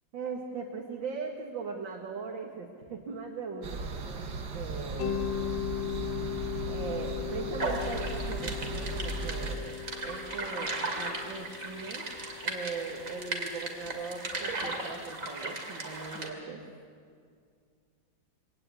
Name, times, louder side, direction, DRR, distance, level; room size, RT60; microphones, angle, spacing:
voice 1, 0.1-4.3 4.5-5.2 6.7-9.8 10.0-12.0 12.4-16.6, right 4 dB, 85° right, -1 dB, 2.5 m, -39 dB
sound 1, 3.6-9.6, right 3 dB, 65° right, 2.1 m, -37 dB
Mallet percussion, 5.0-13.8, left 11 dB, 75° left, 1.7 m, -38 dB
sound 2, 7.6-16.3, right 2 dB, 45° right, 2.9 m, -37 dB
23.5 x 18.0 x 8.4 m, 2.1 s
omnidirectional pair, 2.0 m